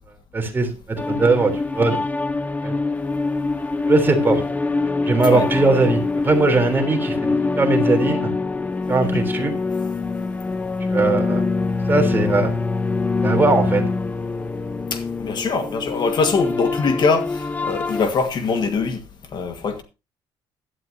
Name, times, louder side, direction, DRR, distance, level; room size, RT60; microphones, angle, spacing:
voice 1, 0.3-2.0 2.6-2.7 3.9-4.4 5.0-6.0 6.2-8.3 8.9-9.5 10.9-11.5 11.9-12.6 13.2-13.8, right 3 dB, 20° right, 3.4 m, -20 dB
sound 1, 1.0-18.1, left 3 dB, 15° left, 0.6 m, -24 dB
voice 2, 14.9-19.0 19.3-19.8, left 4 dB, 45° left, 1.6 m, -23 dB
16.5 x 11.5 x 2.7 m
cardioid pair, 140°, 11 cm